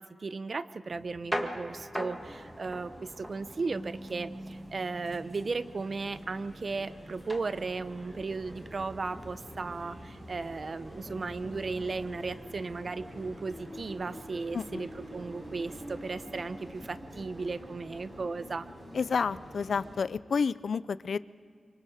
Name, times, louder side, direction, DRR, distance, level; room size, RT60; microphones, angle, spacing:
voice 1, 0.0-18.7, right 4 dB, 50° right, 14 dB, 0.7 m, -36 dB
sound 1, 0.9-17.1, equal, 10° right, 1.6 m, -44 dB
sound 2, 2.1-16.7, left 1 dB, 45° left, 4.0 m, -62 dB
sound 3, 2.2-20.0, equal, 25° right, 7.1 m, -48 dB
voice 2, 14.5-14.9 18.9-21.2, left 5 dB, 70° left, 17 dB, 0.4 m, -30 dB
25.0 x 24.5 x 5.0 m, 2.3 s
wide cardioid pair, 90°, 0 cm